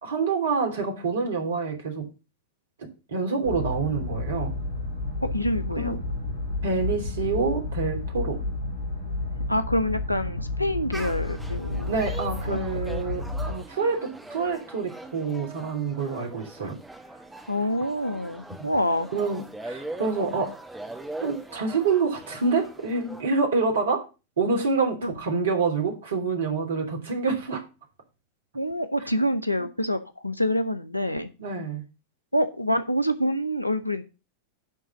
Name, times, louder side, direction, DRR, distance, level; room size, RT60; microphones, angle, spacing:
voice 1, 0.0-2.0 3.1-4.5 5.8-6.0 6.6-8.4 11.9-16.8 18.6-18.7 19.1-20.5 21.2-24.0 24.4-27.6 31.4-31.8, right 4 dB, 65° right, 2 dB, 2.9 m, -27 dB
sound 1, 3.4-13.5, left 2 dB, 65° left, 4.3 m, -31 dB
voice 2, 5.2-6.0 9.5-11.9 12.5-12.6 17.5-19.1 25.0-25.1 28.5-31.3 32.3-34.0, equal, 85° left, 11 dB, 0.9 m, -26 dB
sound 2, 10.9-23.2, right 2 dB, 5° right, 1.5 m, -41 dB
10.5 x 3.9 x 7.2 m, 0.30 s
figure-of-eight pair, 90°, 0 cm